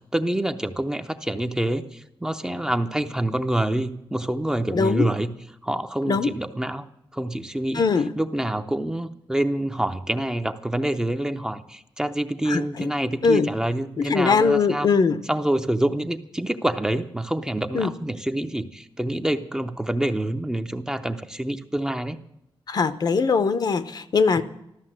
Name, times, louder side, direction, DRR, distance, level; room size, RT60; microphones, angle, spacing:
voice 1, 0.1-5.3 5.6-6.8 7.1-7.8 8.2-14.9 15.3-22.2, right 1 dB, 5° right, 8 dB, 0.6 m, -26 dB
voice 2, 4.7-5.1 6.0-6.3 7.7-8.1 12.5-12.9 13.2-13.5 14.0-15.2 17.7-17.9 22.7-24.4, left 5 dB, 45° left, 13 dB, 0.8 m, -21 dB
14.0 x 13.0 x 7.5 m, 0.80 s
wide cardioid pair, 180°, 9 cm